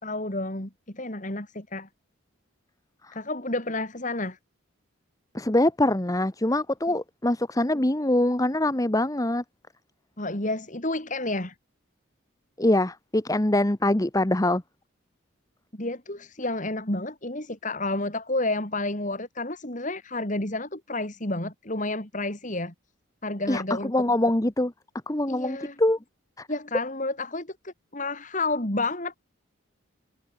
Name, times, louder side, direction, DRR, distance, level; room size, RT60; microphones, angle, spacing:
voice 1, 0.0-1.9 3.1-4.4 10.2-11.5 15.7-22.7 23.2-24.0 25.3-25.8 26.5-29.2, left 2 dB, 35° left, 3.4 m, -30 dB
voice 2, 5.3-9.4 12.6-14.6 23.5-24.7 25.1-26.0 26.4-26.5, left 1 dB, 15° left, 1.0 m, -24 dB
head